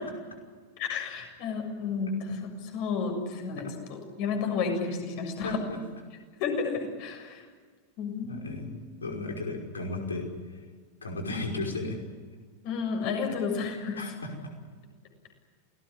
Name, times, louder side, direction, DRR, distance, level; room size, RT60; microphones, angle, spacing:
voice 1, 0.8-5.6 6.4-7.4 8.0-8.7 12.6-14.0, left 5 dB, 45° left, 4 dB, 7.1 m, -32 dB
voice 2, 5.4-5.8 8.3-8.7 9.0-10.3 11.0-12.0 14.0-14.3, left 2 dB, 75° left, 3 dB, 5.5 m, -34 dB
28.5 x 19.0 x 9.8 m, 1.5 s
figure-of-eight pair, 90°, 0 cm